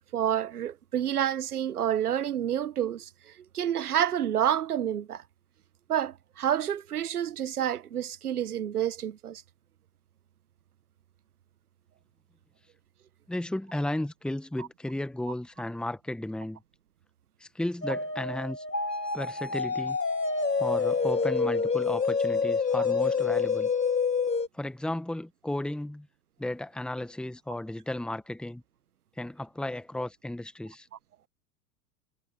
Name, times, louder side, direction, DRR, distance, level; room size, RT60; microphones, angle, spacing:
voice 1, 0.1-5.2 5.9-9.4 14.6-14.7, right 10 dB, 70° right, 1.4 m, -29 dB
voice 2, 13.3-16.6 17.4-18.6 19.1-20.0 20.6-23.7 24.5-26.1 26.4-28.6 29.2-30.9, left 1 dB, ahead, 1.8 m, -34 dB
sound 1, 17.8-24.5, left 5 dB, 90° left, 1.7 m, -27 dB
figure-of-eight pair, 85°, 47 cm